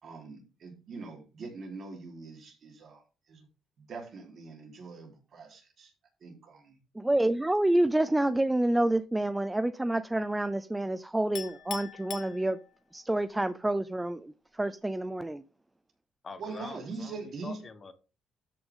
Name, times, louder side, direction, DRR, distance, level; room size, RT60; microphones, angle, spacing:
voice 1, 0.0-3.0 3.3-3.4 3.8-5.9 6.2-6.8 16.4-17.6, right 4 dB, 60° right, 4.0 m, -42 dB
voice 2, 6.9-12.6 12.9-15.4, right 1 dB, 10° right, 0.5 m, -28 dB
Chink clink, 11.4-13.0, left 9 dB, 75° left, 1.7 m, -42 dB
voice 3, 16.2-17.9, left 4 dB, 40° left, 1.4 m, -45 dB
13.0 x 6.0 x 3.8 m
cardioid pair, 90°, 0 cm